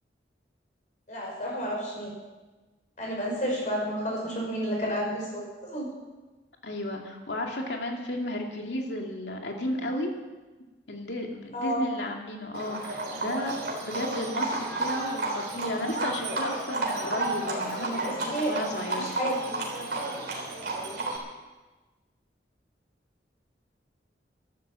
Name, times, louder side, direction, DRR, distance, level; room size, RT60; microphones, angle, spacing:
voice 1, 1.1-2.1 3.0-5.4 5.7-5.9 11.5-11.8 17.9-19.4, equal, 45° left, -3 dB, 5.6 m, -31 dB
voice 2, 6.6-10.1 10.9-13.5 13.8-19.1, left 1 dB, 80° left, 1 dB, 2.5 m, -33 dB
Livestock farm animals working animals, 12.5-21.2, right 2 dB, 60° right, 3.6 m, -32 dB
13.0 x 12.5 x 7.5 m, 1.2 s
head